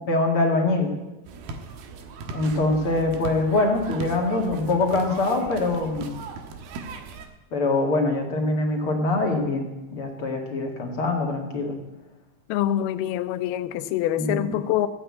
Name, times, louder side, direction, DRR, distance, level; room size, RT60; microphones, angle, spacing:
voice 1, 0.1-0.9 2.3-6.2 7.5-11.7 14.2-14.5, left 2 dB, 40° left, 2.4 m, -24 dB
sound 1, 1.2-7.3, right 4 dB, 75° right, 3.1 m, -38 dB
voice 2, 12.5-14.9, left 12 dB, 80° left, 2.7 m, -25 dB
15.5 x 8.8 x 8.5 m
omnidirectional pair, 4.5 m